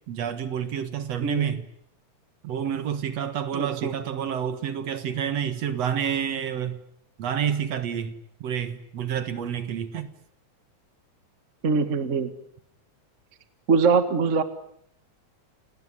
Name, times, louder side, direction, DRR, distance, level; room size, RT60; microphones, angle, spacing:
voice 1, 0.1-1.7 2.4-6.8 7.2-10.1, right 8 dB, 60° right, 2.5 m, -29 dB
voice 2, 3.5-3.9 11.6-12.3 13.7-14.4, right 5 dB, 30° right, 1.5 m, -22 dB
30.0 x 18.5 x 9.9 m
omnidirectional pair, 3.5 m